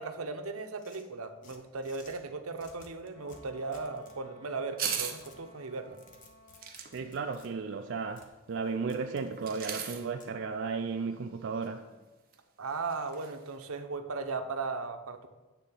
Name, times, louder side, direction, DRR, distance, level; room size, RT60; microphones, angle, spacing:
voice 1, 0.0-6.0 12.6-15.3, right 4 dB, 80° right, 0.8 m, -37 dB
sound 1, 0.8-2.2 2.6-4.2 4.8-5.4 5.8-7.5 8.2-8.3 8.9-9.3 10.2-10.3, left 3 dB, 35° left, 1.0 m, -56 dB
Wind instrument woodwind instrument, 3.1-6.8, equal, 10° left, 1.7 m, -57 dB
sound 2, 4.8-5.2 6.6-6.9 9.4-10.0 11.6-11.7 11.9-12.0 12.3-12.4 12.9-13.3 13.6-13.7, right 8 dB, 40° right, 0.9 m, -36 dB
voice 2, 6.9-11.9, right 5 dB, 55° right, 0.4 m, -34 dB
9.2 x 3.9 x 7.1 m
head